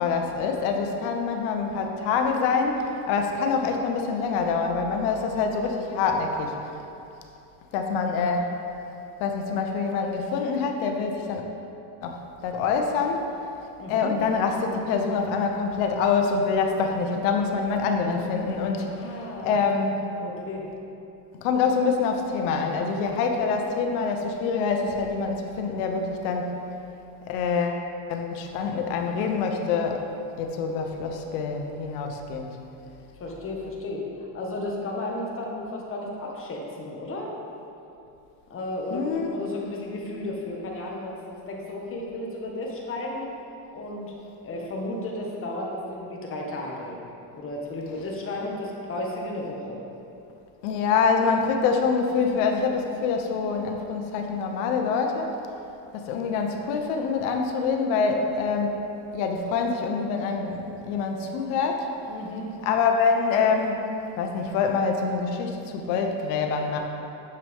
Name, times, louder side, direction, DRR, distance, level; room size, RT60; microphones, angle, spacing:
voice 1, 0.0-6.6 7.7-8.5 9.2-11.4 12.0-13.2 13.9-18.9 19.4-20.0 21.4-26.5 27.3-27.8 28.1-30.0 30.4-32.6 38.9-39.4 50.6-55.3 55.9-58.8 59.1-61.9 62.6-66.8, left 5 dB, 75° left, 3 dB, 1.0 m, -25 dB
voice 2, 13.8-14.1 18.8-19.6 20.2-20.7 33.2-37.3 38.5-41.2 41.5-43.3 43.7-44.1 44.4-47.0 47.3-49.8 62.0-62.5, left 1 dB, 30° left, -2 dB, 1.4 m, -33 dB
9.4 x 7.0 x 3.6 m, 2.8 s
cardioid pair, 140°, 44 cm